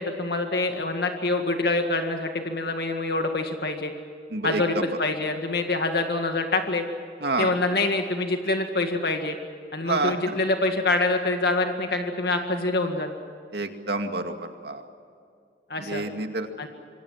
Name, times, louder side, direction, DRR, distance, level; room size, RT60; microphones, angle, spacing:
voice 1, 0.0-3.9 4.4-6.8 7.4-9.4 9.7-13.1 15.7-16.0 16.6-16.7, left 2 dB, 60° left, 5 dB, 1.9 m, -25 dB
voice 2, 7.2-7.5 9.9-10.1 13.5-14.3 14.6-14.8 15.9-16.5, right 2 dB, 65° right, 5 dB, 2.3 m, -27 dB
26.5 x 24.0 x 7.5 m, 2.3 s
head